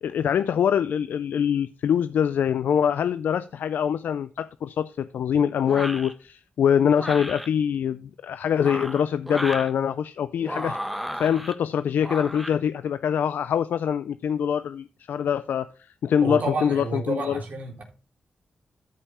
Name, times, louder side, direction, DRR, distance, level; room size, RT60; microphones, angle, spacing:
voice 1, 0.0-10.8 11.2-15.7 16.0-17.4, left 8 dB, 85° left, 0.4 m, -24 dB
sound 1, 5.7-6.1 6.9-7.5 8.5-9.7 10.4-11.5 12.0-12.5, equal, ahead, 1.4 m, -33 dB
voice 2, 16.2-17.8, right 3 dB, 60° right, 3.7 m, -30 dB
13.0 x 5.5 x 4.3 m
cardioid pair, 60°, 3 cm